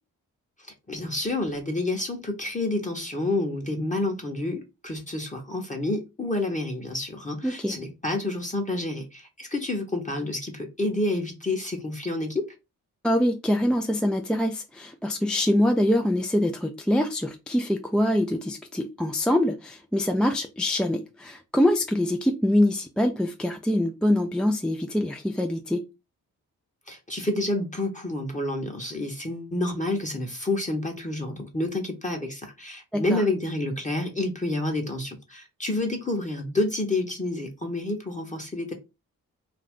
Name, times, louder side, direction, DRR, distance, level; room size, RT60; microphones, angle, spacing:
voice 1, 0.6-12.5 26.9-38.7, left 2 dB, 20° left, 0.9 m, -29 dB
voice 2, 7.4-7.8 13.0-25.8 32.9-33.2, left 1 dB, ahead, 0.3 m, -24 dB
2.5 x 2.2 x 3.5 m
supercardioid pair, 40°, 38 cm